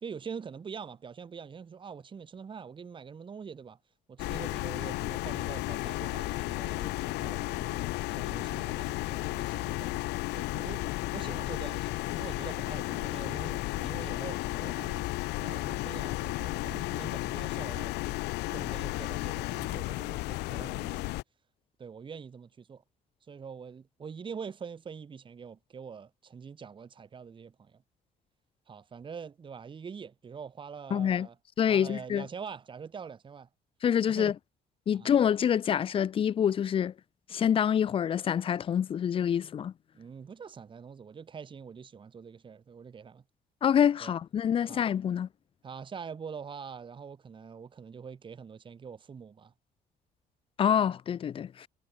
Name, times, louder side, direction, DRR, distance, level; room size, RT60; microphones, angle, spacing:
voice 1, 0.0-3.8 4.1-10.0 10.3-15.1 15.4-18.0 18.5-21.2 21.8-22.8 23.3-27.8 28.7-31.3 31.7-33.5 34.1-34.3 34.9-35.1 39.9-43.2 44.0-44.1 44.7-44.8 45.6-49.5, right 6 dB, 30° right, 1.1 m, -44 dB
sound 1, 4.2-21.2, left 20 dB, 85° left, 0.6 m, -33 dB
voice 2, 30.9-31.3 31.6-32.3 33.8-34.3 34.9-36.9 37.3-39.7 43.6-45.3 50.6-51.7, left 8 dB, 30° left, 0.4 m, -26 dB
cardioid pair, 110°, 17 cm